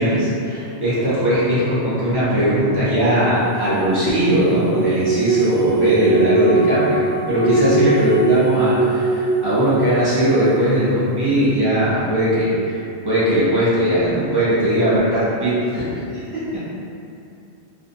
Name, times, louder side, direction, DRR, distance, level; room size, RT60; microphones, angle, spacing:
voice 1, 0.0-12.8 13.0-15.9, right 1 dB, 30° right, -12 dB, 0.5 m, -19 dB
sound 1, 3.3-11.1, right 3 dB, 65° right, 1.0 m, -21 dB
2.5 x 2.0 x 2.6 m, 2.6 s
omnidirectional pair, 1.1 m